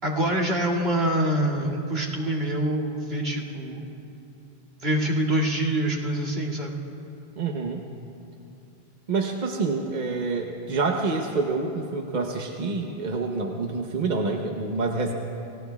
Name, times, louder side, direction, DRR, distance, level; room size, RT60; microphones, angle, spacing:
voice 1, 0.0-3.8 4.8-6.7, right 1 dB, 70° right, -2 dB, 2.6 m, -25 dB
voice 2, 7.4-7.8 9.1-15.1, right 3 dB, 45° right, 2 dB, 0.9 m, -27 dB
30.0 x 18.0 x 2.3 m, 2.7 s
omnidirectional pair, 1.1 m